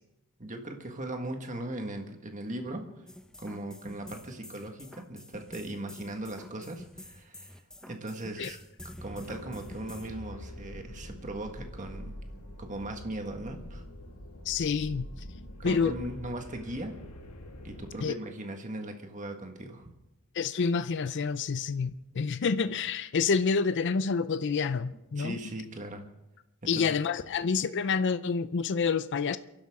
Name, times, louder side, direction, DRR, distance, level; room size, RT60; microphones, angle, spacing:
voice 1, 0.4-2.9 3.4-8.6 9.0-12.2 12.6-13.8 15.6-17.0 17.6-19.9 25.2-26.1 26.6-26.9, right 1 dB, 35° right, 1.6 m, -39 dB
sound 1, 3.1-10.1, left 1 dB, 5° left, 0.8 m, -48 dB
sound 2, 9.1-17.9, left 1 dB, 80° left, 2.0 m, -45 dB
voice 2, 14.5-15.1 15.6-16.0 18.0-18.2 20.3-25.4 26.7-29.4, left 5 dB, 55° left, 0.5 m, -28 dB
29.5 x 11.5 x 3.7 m
head